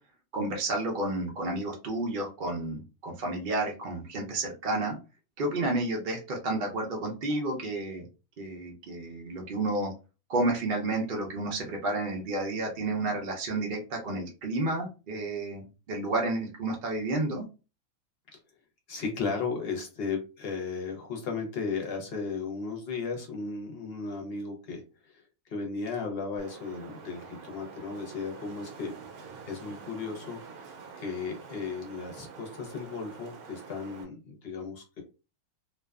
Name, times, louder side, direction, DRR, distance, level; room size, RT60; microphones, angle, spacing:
voice 1, 0.3-5.0 5.4-8.0 8.4-9.9 10.3-17.5, right 2 dB, 60° right, 0 dB, 0.5 m, -31 dB
voice 2, 18.9-28.9 29.2-30.7 31.0-35.0, left 4 dB, 50° left, 2 dB, 0.8 m, -35 dB
Wind, 26.4-34.0, right 5 dB, 85° right, 1.1 m, -47 dB
2.6 x 2.2 x 2.2 m, 0.32 s
omnidirectional pair, 1.5 m